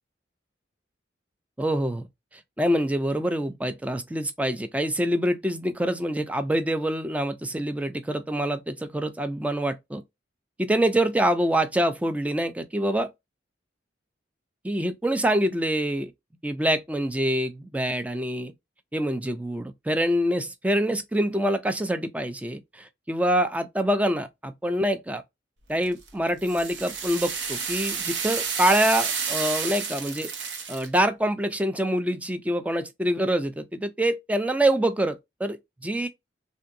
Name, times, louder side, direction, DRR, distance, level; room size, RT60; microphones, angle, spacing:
voice 1, 1.6-2.1 2.6-10.0 10.6-13.1 14.6-16.1 16.4-18.5 18.9-25.2 25.7-30.3 30.7-35.6 35.8-36.1, right 1 dB, 10° right, 0.4 m, -25 dB
sound 1, 25.8-31.0, right 6 dB, 70° right, 0.8 m, -30 dB
3.7 x 2.6 x 2.5 m
head